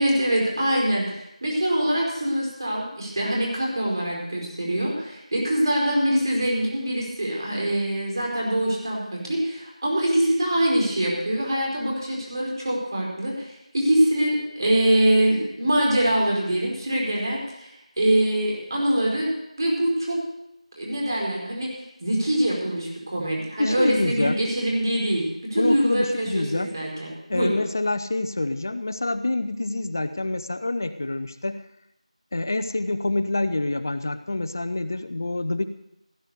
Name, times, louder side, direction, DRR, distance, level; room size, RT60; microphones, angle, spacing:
voice 1, 0.0-17.7 18.0-19.3 19.6-20.2 20.8-21.7 22.0-27.6, right 1 dB, 35° right, -2 dB, 5.0 m, -24 dB
voice 2, 23.6-24.4 25.6-26.7 27.3-31.6 32.3-35.6, left 2 dB, 30° left, 11 dB, 0.7 m, -26 dB
17.5 x 9.7 x 6.7 m, 0.81 s
figure-of-eight pair, 175°, 4 cm